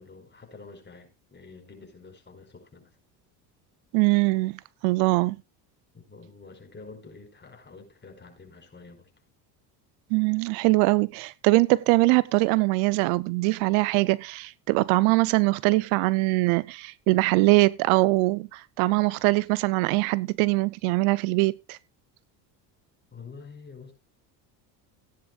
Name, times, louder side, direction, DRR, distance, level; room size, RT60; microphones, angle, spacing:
voice 1, 0.0-2.9 5.9-9.1 23.1-23.9, left 4 dB, 20° left, 5.0 m, -47 dB
voice 2, 3.9-5.4 10.1-21.8, right 23 dB, 75° right, 0.6 m, -22 dB
17.0 x 10.0 x 2.4 m
supercardioid pair, 85°, 48 cm